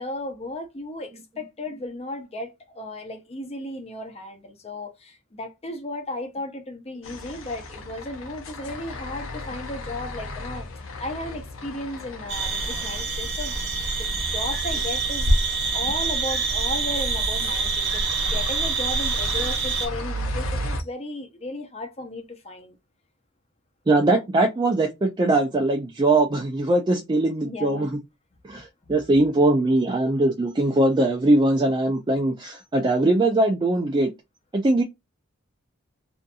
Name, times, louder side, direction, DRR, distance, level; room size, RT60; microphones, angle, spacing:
voice 1, 0.0-10.7 11.0-13.6 13.9-22.8 27.4-27.9, left 1 dB, 30° left, 0.7 m, -35 dB
sound 1, 7.0-20.8, left 1 dB, 70° left, 0.6 m, -36 dB
sound 2, 12.3-19.9, right 3 dB, 60° right, 0.9 m, -25 dB
voice 2, 23.9-28.0 28.4-34.1 34.5-34.8, right 2 dB, 20° right, 0.4 m, -21 dB
2.6 x 2.6 x 2.3 m
head